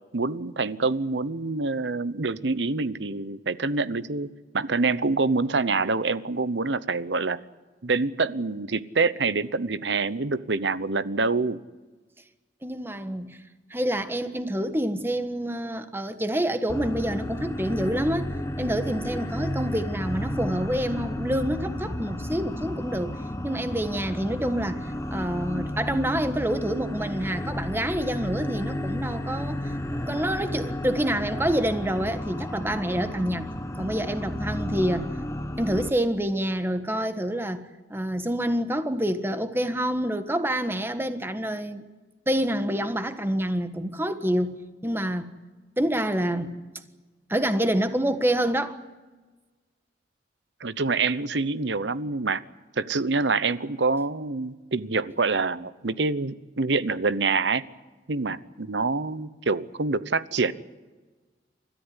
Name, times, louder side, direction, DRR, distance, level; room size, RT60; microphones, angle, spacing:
voice 1, 0.1-7.4 7.8-11.6 50.6-52.4 52.8-57.6 58.1-60.5, right 3 dB, 75° right, 0.9 m, -26 dB
voice 2, 12.6-13.4 13.7-18.3 18.6-33.4 33.8-35.1 35.6-41.8 42.3-45.3 45.8-46.5 47.3-48.8, right 1 dB, 10° right, 1.4 m, -27 dB
sound 1, 16.7-35.9, left 1 dB, 15° left, 1.1 m, -32 dB
30.0 x 14.0 x 9.8 m
head